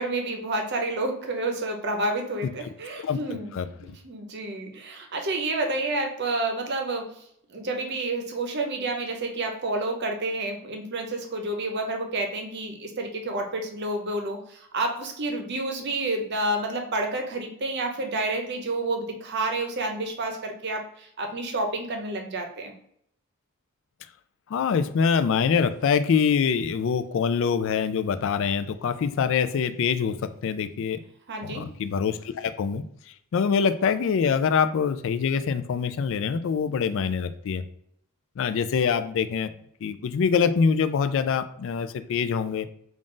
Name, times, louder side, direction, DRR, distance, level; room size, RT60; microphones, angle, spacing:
voice 1, 0.0-3.5 3.8-7.2 7.5-22.7 31.3-31.7, right 2 dB, 50° right, 3 dB, 0.7 m, -29 dB
voice 2, 24.5-31.0 31.4-32.8 33.3-37.6 38.4-39.5 39.8-42.7, left 6 dB, 60° left, 11 dB, 0.3 m, -24 dB
3.7 x 2.4 x 3.8 m, 0.71 s
head